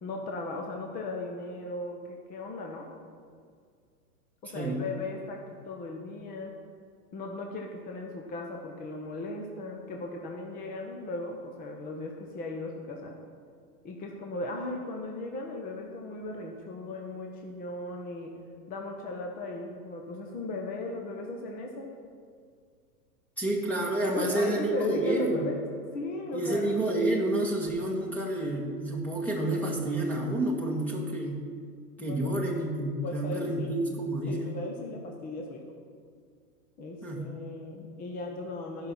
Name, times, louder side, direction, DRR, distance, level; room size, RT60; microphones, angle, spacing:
voice 1, 0.0-2.9 4.4-6.5 7.1-13.2 13.8-18.3 18.7-21.9 24.1-26.7 32.0-32.5 33.0-33.7 34.3-35.6 36.8-38.9, left 2 dB, 20° left, 1 dB, 0.8 m, -37 dB
voice 2, 23.4-25.4 26.3-31.4 32.0-34.6 37.0-37.2, right 1 dB, 5° left, -2 dB, 1.5 m, -29 dB
14.5 x 5.7 x 5.8 m, 2.1 s
hypercardioid pair, 135°, 45 cm